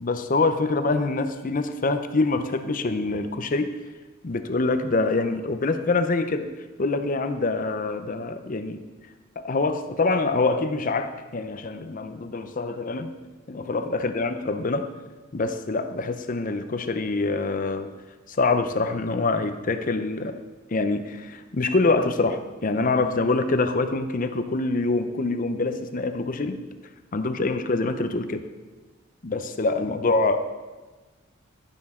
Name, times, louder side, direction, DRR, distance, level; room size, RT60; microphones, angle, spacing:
voice 1, 0.0-3.7 4.2-6.5 6.8-8.8 9.4-13.1 13.5-14.9 15.3-17.9 18.3-20.3 20.7-26.6 27.1-28.4 29.2-30.4, left 3 dB, 45° left, 9 dB, 0.6 m, -25 dB
11.5 x 9.9 x 3.7 m, 1.3 s
head